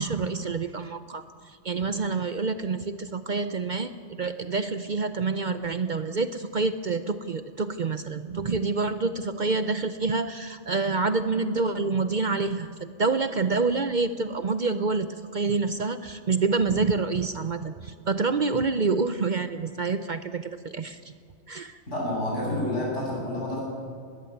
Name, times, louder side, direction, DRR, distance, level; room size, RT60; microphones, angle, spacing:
voice 1, 0.0-21.1 21.5-21.8, right 4 dB, 45° right, 10 dB, 0.8 m, -27 dB
voice 2, 21.9-23.6, left 1 dB, 80° left, -3 dB, 8.3 m, -29 dB
20.0 x 15.5 x 9.3 m, 2.1 s
omnidirectional pair, 1.2 m